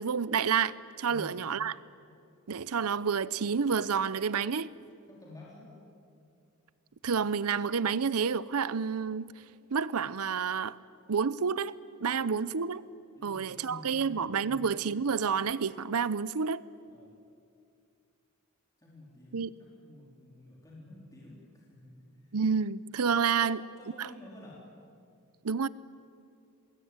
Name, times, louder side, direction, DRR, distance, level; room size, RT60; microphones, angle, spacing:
voice 1, 0.0-1.8 2.5-4.7 7.0-9.3 9.7-10.8 11.1-12.8 13.2-16.6 19.3-19.5 22.3-23.6 24.0-24.1 25.4-25.7, right 6 dB, 80° right, 0.7 m, -29 dB
voice 2, 5.1-5.7 12.1-12.2 13.2-14.7 16.9-17.1 18.8-22.4 23.2-24.6, left 1 dB, 15° left, 3.9 m, -50 dB
24.5 x 20.5 x 9.6 m
head